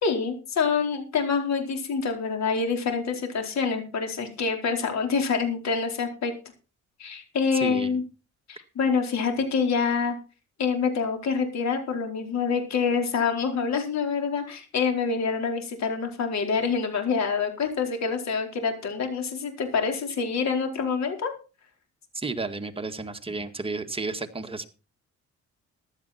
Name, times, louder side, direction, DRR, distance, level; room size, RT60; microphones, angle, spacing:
voice 1, 0.0-6.3 7.0-8.0 8.5-10.2 10.6-21.3, left 5 dB, 65° left, 4 dB, 4.6 m, -26 dB
voice 2, 7.5-8.0 22.1-24.7, right 3 dB, 20° right, 6 dB, 1.9 m, -32 dB
15.0 x 11.5 x 4.4 m, 0.33 s
cardioid pair, 90°, 30 cm